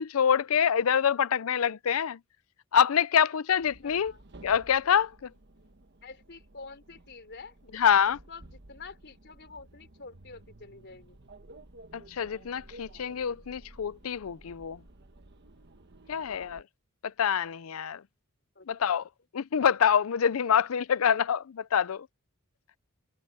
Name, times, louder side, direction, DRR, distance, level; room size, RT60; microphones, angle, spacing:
voice 1, 0.0-2.2 2.7-4.1 4.4-5.3 7.7-8.2 11.9-14.8 16.1-16.6 17.2-18.0 18.7-19.0 19.3-22.1, left 8 dB, 75° left, 0.5 m, -26 dB
sound 1, 3.6-16.6, right 1 dB, 55° right, 1.3 m, -54 dB
voice 2, 3.8-4.2 6.0-11.2 16.2-16.6 18.5-18.9, left 4 dB, 55° left, 4.4 m, -48 dB
head